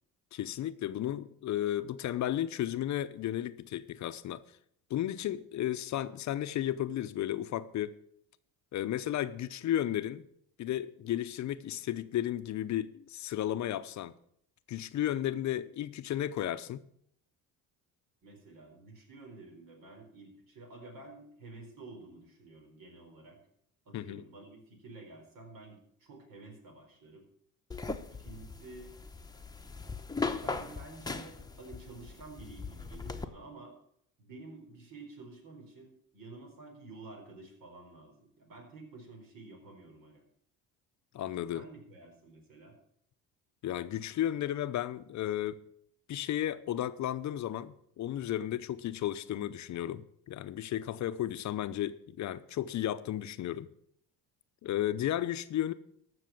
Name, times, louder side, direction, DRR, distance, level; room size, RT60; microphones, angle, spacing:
voice 1, 0.3-4.4 4.9-8.0 8.7-10.3 10.6-14.1 14.7-16.8 23.9-24.2 41.1-41.6 43.6-45.6 46.1-53.7 54.6-55.7, left 12 dB, 55° left, 0.7 m, -33 dB
voice 2, 18.2-23.4 23.8-27.3 28.1-28.9 30.3-33.7 34.2-40.2 41.5-42.8, right 2 dB, 65° right, 4.6 m, -50 dB
sound 1, 27.7-33.3, left 4 dB, 10° left, 0.9 m, -39 dB
14.5 x 6.2 x 7.6 m
cardioid pair, 95°, 35 cm